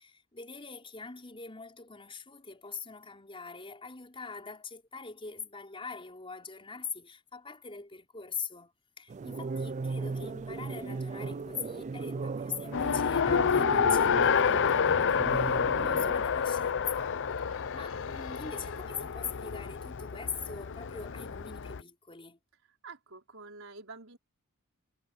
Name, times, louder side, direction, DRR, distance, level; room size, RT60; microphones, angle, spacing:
voice 1, 0.0-17.2 17.7-22.4, left 5 dB, 25° left, 4.8 m, -42 dB
sound 1, 9.1-16.1, right 4 dB, 35° right, 0.4 m, -37 dB
Race car auto racing, 12.7-21.8, left 6 dB, 55° left, 0.6 m, -28 dB
sound 2, 15.1-19.4, left 7 dB, 75° left, 4.8 m, -55 dB
voice 2, 22.8-24.2, right 3 dB, 65° right, 5.1 m, -47 dB
head